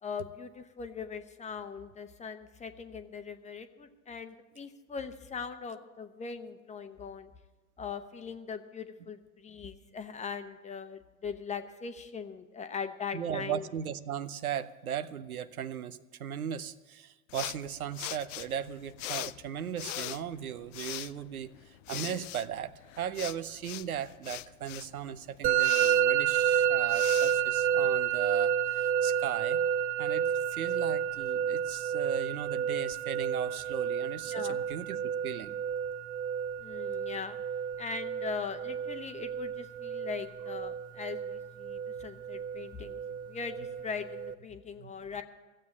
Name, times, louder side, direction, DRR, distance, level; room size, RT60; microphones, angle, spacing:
voice 1, 0.0-7.3 7.8-13.7 34.3-34.6 36.6-37.4 37.8-45.2, left 5 dB, 15° left, 9 dB, 0.9 m, -40 dB
voice 2, 13.1-29.6 30.0-35.6 44.8-45.0, right 9 dB, 90° right, 12 dB, 0.7 m, -37 dB
sound 1, 17.3-28.2, left 16 dB, 60° left, 0.5 m, -42 dB
Musical instrument, 25.4-44.3, right 9 dB, 20° right, 0.4 m, -30 dB
15.0 x 7.6 x 8.4 m, 1.2 s
hypercardioid pair, 100°, 42 cm